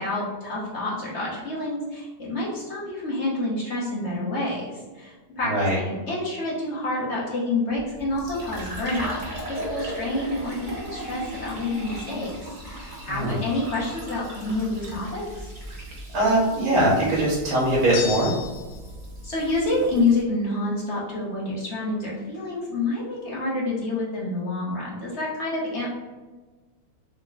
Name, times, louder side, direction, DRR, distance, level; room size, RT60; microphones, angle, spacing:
voice 1, 0.0-12.3 12.6-15.5 19.2-25.9, left 2 dB, 40° left, -6 dB, 1.1 m, -28 dB
voice 2, 5.4-5.8 13.1-13.4 16.1-18.3, right 1 dB, 70° right, -6 dB, 2.1 m, -21 dB
Fill (with liquid), 7.7-20.2, right 1 dB, 45° right, 0.6 m, -38 dB
sound 1, 17.9-18.9, left 8 dB, 90° left, 1.7 m, -33 dB
4.4 x 2.9 x 3.8 m, 1.3 s
omnidirectional pair, 2.4 m